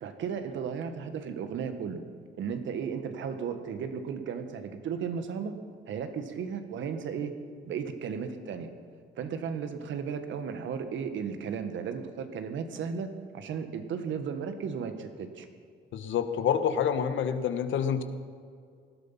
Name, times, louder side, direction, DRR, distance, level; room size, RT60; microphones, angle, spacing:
voice 1, 0.0-2.0 2.4-5.5 5.9-7.3 7.6-8.7 9.2-15.5, right 6 dB, 75° right, 8 dB, 1.6 m, -35 dB
voice 2, 15.9-18.0, left 8 dB, 75° left, 9 dB, 1.3 m, -27 dB
19.0 x 12.5 x 5.8 m, 2.2 s
cardioid pair, 90°, 20 cm